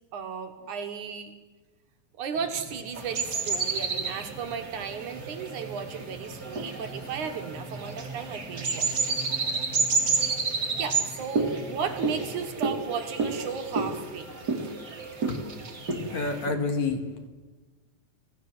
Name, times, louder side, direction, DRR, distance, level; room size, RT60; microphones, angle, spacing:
voice 1, 0.1-1.3 2.2-9.2 10.8-14.3, right 6 dB, 65° right, 6 dB, 2.5 m, -35 dB
sound 1, 2.3-12.5, right 2 dB, 5° right, 0.8 m, -44 dB
sound 2, 2.9-16.5, right 4 dB, 30° right, 2.5 m, -30 dB
voice 2, 16.1-17.3, left 3 dB, 55° left, 7 dB, 2.7 m, -29 dB
26.0 x 17.5 x 7.7 m, 1.3 s
omnidirectional pair, 4.2 m